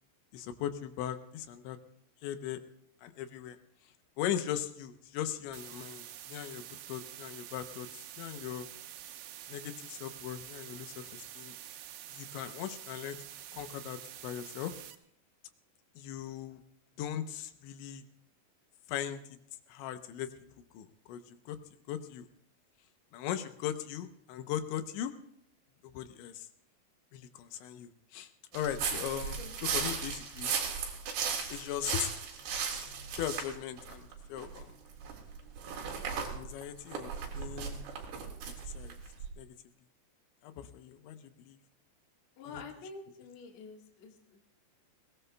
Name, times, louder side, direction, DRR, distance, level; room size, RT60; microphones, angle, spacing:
voice 1, 0.3-1.8 2.2-2.6 3.0-3.6 4.2-8.7 9.5-11.5 12.1-13.2 13.5-14.8 16.0-16.6 17.0-18.0 18.9-19.2 19.7-20.3 20.7-21.6 21.9-22.3 23.1-25.1 25.8-26.5 27.1-30.5 31.5-32.1 33.1-34.7 36.3-37.8 38.7-39.0 39.4-39.5 40.4-41.6 42.5-42.6, left 10 dB, 90° left, 8 dB, 3.2 m, -39 dB
sound 1, 5.5-15.0, right 11 dB, 90° right, 3.3 m, -47 dB
sound 2, 28.5-34.6 35.0-39.3, right 6 dB, 65° right, 3.9 m, -36 dB
voice 2, 42.4-44.5, left 4 dB, 55° left, 2 dB, 2.2 m, -48 dB
21.5 x 19.0 x 2.3 m, 0.72 s
omnidirectional pair, 5.2 m